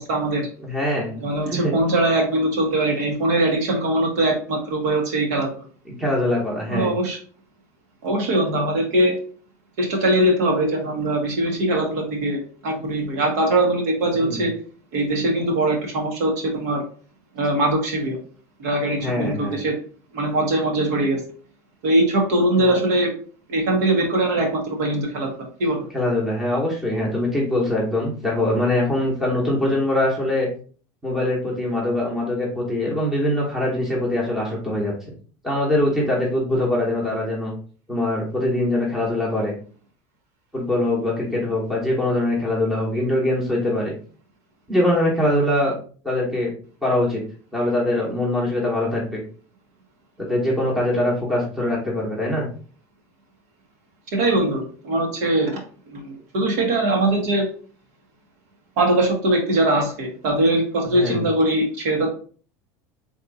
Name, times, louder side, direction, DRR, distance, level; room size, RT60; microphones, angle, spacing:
voice 1, 0.0-0.5 1.2-5.5 6.7-7.2 8.0-9.2 9.8-14.5 14.9-16.8 17.3-18.2 18.6-19.7 20.1-21.2 21.8-23.1 23.5-25.3 25.6-25.8 54.1-55.6 55.9-57.5 58.8-62.1, right 1 dB, 85° right, 1 dB, 1.5 m, -21 dB
voice 2, 0.6-1.1 1.5-1.7 6.0-6.9 14.2-14.4 19.0-19.6 22.6-22.7 25.9-30.5 31.0-34.9 35.4-37.5 37.9-39.5 40.5-43.9 44.7-45.8 46.0-46.5 46.8-47.2 47.5-49.2 50.2-52.5 60.9-61.2, left 1 dB, 5° right, -4 dB, 1.0 m, -23 dB
3.4 x 2.8 x 3.8 m, 0.41 s
cardioid pair, 175°, 9 cm